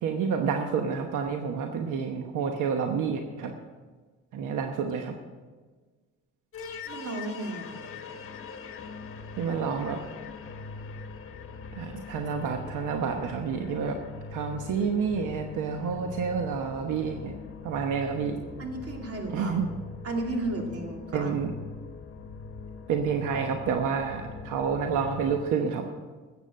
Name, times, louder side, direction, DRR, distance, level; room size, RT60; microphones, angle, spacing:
voice 1, 0.0-3.5 4.3-5.1 9.4-10.0 11.7-14.0 14.3-17.3 17.6-18.4 19.3-19.7 21.1-21.5 22.9-25.8, right 6 dB, 85° right, 4 dB, 1.1 m, -29 dB
sound 1, 6.5-25.5, left 4 dB, 45° left, 1.5 m, -42 dB
voice 2, 6.9-7.9 18.6-19.5 20.0-21.4, right 2 dB, 50° right, 2 dB, 2.7 m, -33 dB
14.0 x 8.3 x 6.4 m, 1.4 s
cardioid pair, 90°, 30 cm